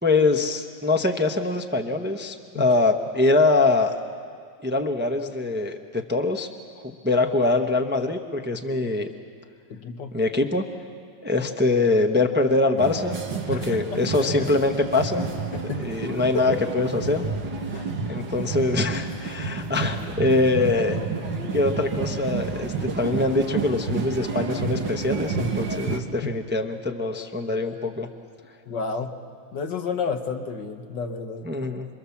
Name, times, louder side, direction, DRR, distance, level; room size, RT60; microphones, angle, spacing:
voice 1, 0.0-3.9 4.6-6.5 7.0-9.1 10.1-10.6 11.2-13.2 13.5-15.3 15.8-17.2 18.1-21.0 21.5-28.1 31.4-31.9, left 2 dB, 15° right, 3 dB, 0.3 m, -23 dB
voice 2, 9.7-10.1 13.5-14.5 15.5-16.0 16.3-16.6 17.7-17.9 19.8-20.1 26.2-26.3 28.7-29.1 29.5-31.5, left 5 dB, 60° left, 6 dB, 1.7 m, -31 dB
sound 1, 12.8-26.0, right 4 dB, 60° right, 2.1 m, -30 dB
28.0 x 23.0 x 7.2 m, 2.1 s
omnidirectional pair, 2.3 m